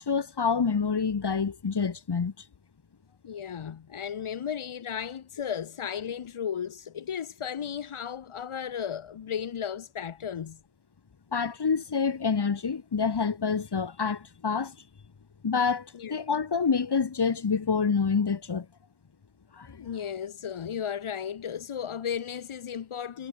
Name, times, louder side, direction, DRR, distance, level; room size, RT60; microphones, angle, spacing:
voice 1, 0.0-2.3 11.3-14.8 15.4-18.7 19.6-19.8, left 5 dB, 50° left, 7.6 m, -27 dB
voice 2, 3.2-10.6 15.9-16.2 19.7-23.3, left 8 dB, 75° left, 4.9 m, -35 dB
cardioid pair, 85°, 50 cm